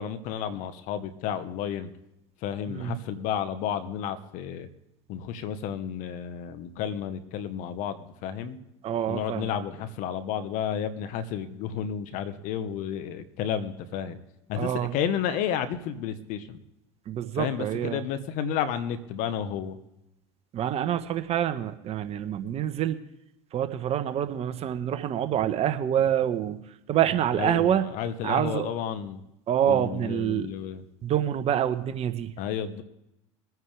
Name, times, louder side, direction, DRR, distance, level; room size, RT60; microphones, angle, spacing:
voice 1, 0.0-1.9 2.4-4.7 5.1-8.6 9.1-14.2 14.5-16.6 17.3-19.8 27.4-29.2 29.7-30.8 32.4-32.8, left 8 dB, 60° left, 11 dB, 1.3 m, -31 dB
voice 2, 2.7-3.0 8.8-9.5 14.6-14.9 17.1-18.0 20.5-23.0 23.5-26.6 26.9-27.9 28.2-28.7 29.5-30.5 31.0-32.3, right 10 dB, 40° right, 10 dB, 1.1 m, -26 dB
23.5 x 9.4 x 3.4 m, 0.87 s
hypercardioid pair, 90°, 15 cm